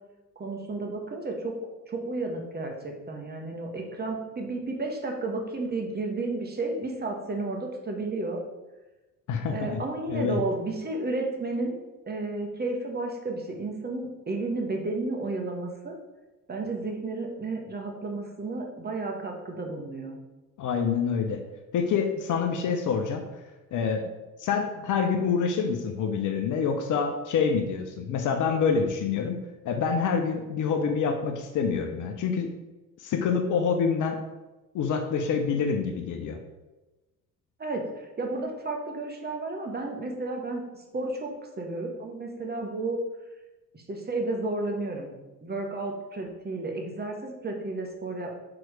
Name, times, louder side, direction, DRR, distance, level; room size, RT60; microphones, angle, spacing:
voice 1, 0.4-1.5 1.9-8.4 9.5-16.0 16.5-20.2 37.6-41.3 41.6-43.0 43.7-45.1 45.4-48.3, right 2 dB, 20° right, 2 dB, 1.4 m, -32 dB
voice 2, 9.3-9.8 10.1-10.4 20.6-21.4 21.7-23.2 23.7-24.1 24.4-29.4 29.6-32.5 33.0-34.2 34.7-36.4, left 6 dB, 40° left, 5 dB, 0.9 m, -26 dB
6.2 x 4.9 x 4.8 m, 1.1 s
figure-of-eight pair, 60°, 48 cm